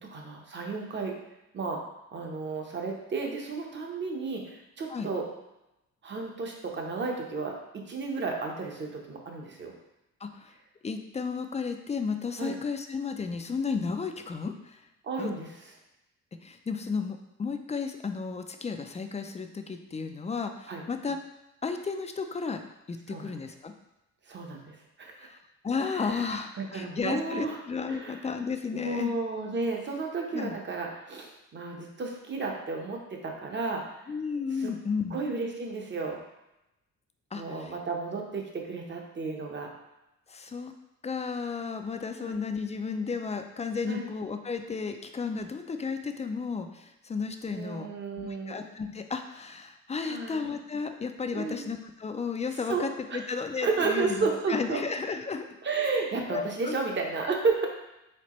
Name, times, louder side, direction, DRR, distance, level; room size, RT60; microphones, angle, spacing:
voice 1, 0.0-1.2 1.5-1.8 2.1-5.3 6.0-9.7 12.4-12.5 15.0-15.7 20.7-20.8 23.1-23.3 24.3-25.3 25.8-27.6 27.9-28.3 28.7-34.1 34.6-34.7 35.1-36.2 37.4-39.7 42.2-42.4 43.8-44.1 47.5-48.6 50.1-50.5 51.3-51.7 52.7-52.8 53.1-53.2 53.6-54.8 55.6-57.7, right 4 dB, 35° right, 1 dB, 0.9 m, -33 dB
voice 2, 10.2-10.5 10.8-14.8 15.2-15.3 16.4-21.2 21.6-22.6 22.9-23.7 25.2-25.4 25.6-29.1 30.3-30.6 34.1-35.2 37.3-37.7 40.3-40.7 41.0-47.9 48.1-55.5 56.3-56.8, left 5 dB, 25° left, 7 dB, 0.4 m, -33 dB
4.4 x 4.0 x 3.0 m, 0.91 s
cardioid pair, 90°, 30 cm